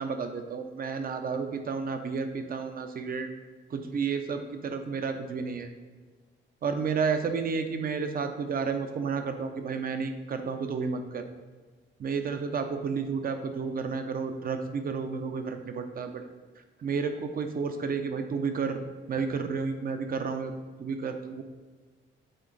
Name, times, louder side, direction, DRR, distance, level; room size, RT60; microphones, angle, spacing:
voice 1, 0.0-3.3 3.7-5.7 6.6-11.2 12.0-16.2 16.8-18.8 19.1-20.5 20.8-21.4, right 5 dB, 45° right, 7 dB, 0.8 m, -31 dB
7.8 x 3.7 x 4.0 m, 1.4 s
cardioid pair, 90°, 20 cm